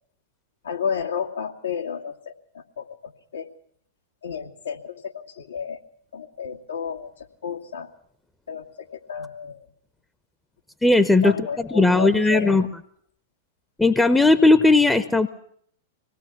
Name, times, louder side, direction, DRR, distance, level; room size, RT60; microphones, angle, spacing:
voice 1, 0.6-3.5 4.2-5.8 6.1-7.9 8.5-9.6 11.2-12.6, left 7 dB, 80° left, 1 dB, 2.4 m, -32 dB
voice 2, 10.8-11.4 11.7-12.7 13.8-15.3, left 2 dB, 5° left, 11 dB, 0.9 m, -17 dB
25.0 x 19.5 x 6.0 m, 0.64 s
figure-of-eight pair, 100°, 0 cm